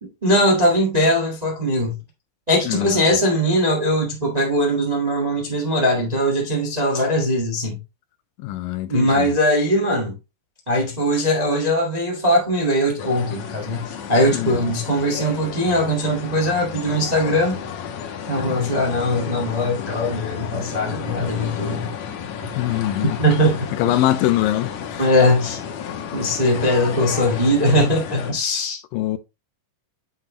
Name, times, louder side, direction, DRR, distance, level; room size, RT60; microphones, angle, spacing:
voice 1, 0.0-1.9 2.5-7.8 8.9-10.1 10.7-17.6 18.3-21.9 22.4-22.5 23.0-23.7 25.0-25.6 26.1-28.8, equal, 30° right, 0.7 m, -20 dB
voice 2, 2.7-3.0 8.4-9.3 14.3-14.7 18.6-18.8 22.6-23.2 23.8-25.1 28.9-29.2, left 14 dB, 85° left, 2.3 m, -23 dB
sound 1, 13.0-28.3, left 7 dB, 65° left, 2.0 m, -32 dB
7.4 x 5.9 x 3.0 m
omnidirectional pair, 3.9 m